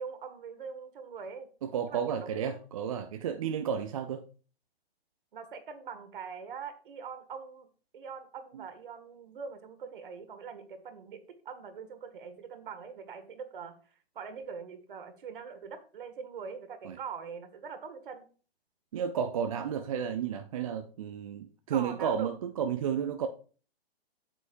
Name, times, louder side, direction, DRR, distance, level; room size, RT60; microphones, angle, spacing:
voice 1, 0.0-1.5 1.9-2.6 5.3-7.7 7.9-11.2 11.5-13.7 14.2-18.2 21.7-22.3, right 6 dB, 55° right, 1.7 m, -42 dB
voice 2, 1.6-4.2 8.5-8.6 16.8-17.0 18.9-23.3, right 8 dB, 35° right, 0.5 m, -32 dB
8.5 x 8.1 x 2.6 m
figure-of-eight pair, 130°, 32 cm